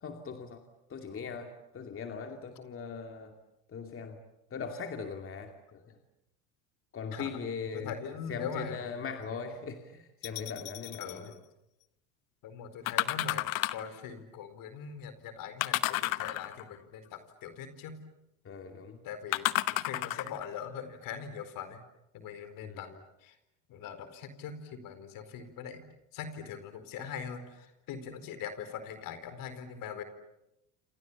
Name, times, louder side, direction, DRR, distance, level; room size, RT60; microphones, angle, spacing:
voice 1, 0.0-0.6 0.9-3.3 3.7-4.2 4.5-6.0 6.9-7.9 8.3-11.3 18.4-19.0 22.6-22.9, left 5 dB, 35° left, 4 dB, 2.6 m, -40 dB
voice 2, 7.7-9.0 11.0-11.4 12.4-18.0 19.0-21.8 22.1-22.9 23.2-23.3 23.7-25.8 26.1-30.0, left 7 dB, 55° left, 11 dB, 4.4 m, -42 dB
sound 1, 10.2-11.2 12.9-13.9 15.6-16.8 19.3-20.5 21.1-21.2, left 18 dB, 90° left, 1.1 m, -32 dB
28.5 x 28.0 x 7.2 m, 0.89 s
supercardioid pair, 105°, 39 cm